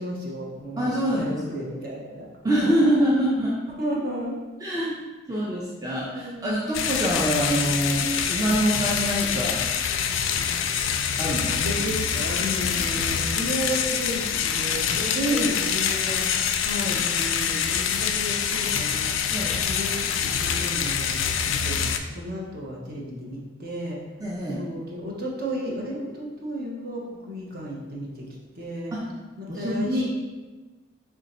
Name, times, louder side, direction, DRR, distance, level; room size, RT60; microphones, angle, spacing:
voice 1, 0.0-0.9 1.2-2.8 3.8-4.3 6.1-6.8 11.5-19.1 19.7-21.2 21.5-24.0 24.6-28.2 28.5-28.9 29.4-30.0, equal, 50° right, -3 dB, 0.8 m, -33 dB
voice 2, 0.8-1.4 2.4-3.5 4.6-4.9 5.3-9.6 11.2-11.5 15.2-15.7 19.3-19.6 24.2-24.7 28.9-29.1 29.5-30.0, equal, 20° right, -5 dB, 0.4 m, -25 dB
sound 1, 6.7-22.0, left 7 dB, 85° left, 0.3 m, -25 dB
3.4 x 2.6 x 4.1 m, 1.2 s
head